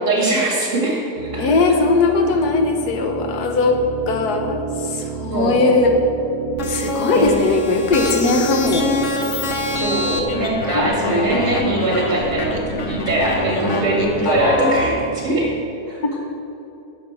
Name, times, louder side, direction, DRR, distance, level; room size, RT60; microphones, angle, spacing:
voice 1, 0.0-1.5 5.3-5.8 7.1-7.3 9.8-15.5 15.9-16.0, right 1 dB, 55° right, -4 dB, 2.7 m, -21 dB
sound 1, 1.2-15.6, right 6 dB, 80° right, 1.3 m, -31 dB
voice 2, 1.4-5.9 6.7-8.9 10.7-10.9, left 3 dB, 85° left, 4 dB, 1.5 m, -19 dB
sound 2, 6.6-14.9, left 3 dB, 55° left, 1.2 m, -25 dB
11.0 x 6.9 x 4.6 m, 2.9 s
omnidirectional pair, 1.6 m